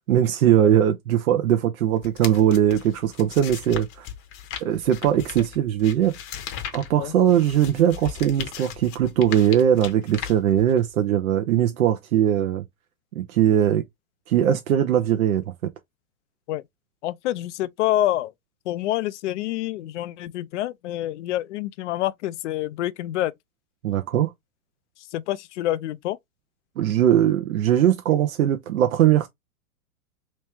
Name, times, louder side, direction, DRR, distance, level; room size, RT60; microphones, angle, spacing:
voice 1, 0.1-4.1 4.6-6.2 6.7-12.6 13.2-13.8 14.3-15.4 23.8-24.3 26.8-29.3, right 10 dB, 75° right, 0.8 m, -20 dB
sound 1, 2.0-11.0, left 9 dB, 30° left, 0.8 m, -38 dB
voice 2, 17.0-18.3 18.7-23.3 25.1-26.2, left 14 dB, 55° left, 0.5 m, -27 dB
3.2 x 3.0 x 3.4 m
hypercardioid pair, 120°, 43 cm